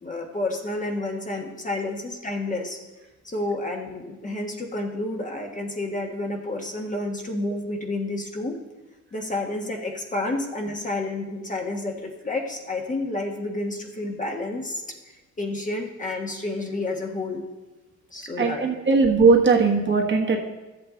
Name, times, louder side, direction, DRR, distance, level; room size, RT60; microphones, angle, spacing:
voice 1, 0.0-2.8 3.2-8.6 9.1-14.8 15.4-17.4 18.1-18.7, left 2 dB, 25° left, 1 dB, 1.4 m, -30 dB
voice 2, 18.4-20.4, right 4 dB, 40° right, 1 dB, 1.4 m, -19 dB
12.5 x 7.8 x 3.8 m, 1.2 s
cardioid pair, 90°, 30 cm